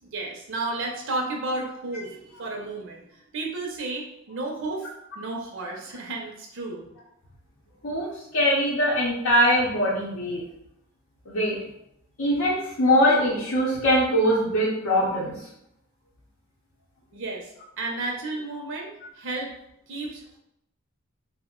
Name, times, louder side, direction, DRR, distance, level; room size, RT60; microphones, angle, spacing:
voice 1, 0.0-4.9 5.2-6.8 17.1-19.6 19.9-20.4, right 2 dB, 60° right, 1 dB, 0.5 m, -33 dB
voice 2, 8.3-10.4 11.3-11.6 12.2-15.3, equal, 75° left, -6 dB, 0.7 m, -22 dB
2.4 x 2.1 x 3.6 m, 0.78 s
head